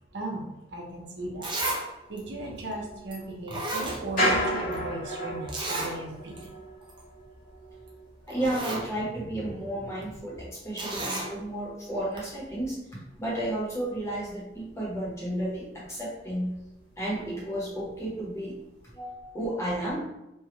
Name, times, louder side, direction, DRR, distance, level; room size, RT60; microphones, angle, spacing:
voice 1, 0.1-0.5 0.7-1.5 2.1-6.4, right 1 dB, 75° right, -1 dB, 0.7 m, -36 dB
Zipper (clothing), 0.9-1.0 1.4-1.8 2.2-2.3 3.1-3.2 3.5-4.5 4.7-4.8 5.5-5.9 6.4-6.5 6.8-7.0 7.9-8.0 8.3-8.9 10.8-11.3 12.2-12.3, right 2 dB, 25° right, 0.6 m, -32 dB
sound 1, 2.1-13.7 14.0-15.6 15.8-15.9 16.3-16.8 17.1-18.3 18.8-18.9, equal, 50° left, 1.0 m, -36 dB
voice 2, 8.3-12.8 13.2-16.5 17.0-18.6 18.9-20.0, right 1 dB, 15° left, -6 dB, 0.9 m, -32 dB
3.3 x 2.3 x 2.9 m, 0.92 s
head